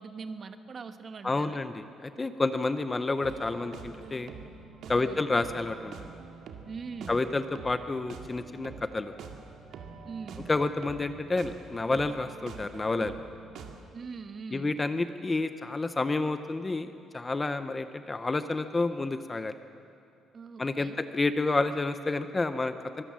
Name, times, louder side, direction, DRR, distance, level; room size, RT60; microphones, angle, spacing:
voice 1, 0.0-1.6 4.9-5.2 6.7-7.2 10.0-10.5 13.9-14.7 20.3-21.0, right 5 dB, 30° right, 9 dB, 1.1 m, -42 dB
voice 2, 1.2-4.3 4.9-6.1 7.1-9.1 10.5-13.1 14.5-19.5 20.6-23.0, left 3 dB, 15° left, 10 dB, 0.6 m, -29 dB
sound 1, 3.2-13.8, right 5 dB, 65° right, 2.1 m, -46 dB
24.0 x 23.5 x 7.5 m, 2.6 s
cardioid pair, 175°, 0 cm